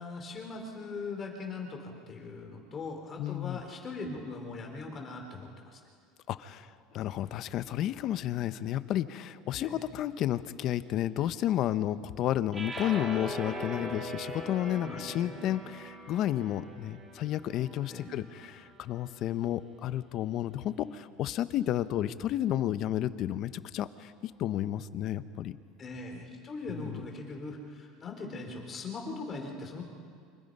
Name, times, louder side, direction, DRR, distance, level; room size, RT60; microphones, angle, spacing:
voice 1, 0.0-5.8 9.5-9.8 14.8-15.4 17.9-18.1 25.8-29.8, left 3 dB, 30° left, 3 dB, 3.9 m, -40 dB
voice 2, 3.2-3.6 6.3-25.6 26.7-27.1, left 12 dB, 50° left, 13 dB, 0.9 m, -32 dB
sound 1, 12.5-18.8, right 1 dB, 20° right, 4.2 m, -41 dB
28.5 x 25.5 x 5.5 m, 2.2 s
supercardioid pair, 130°, 0 cm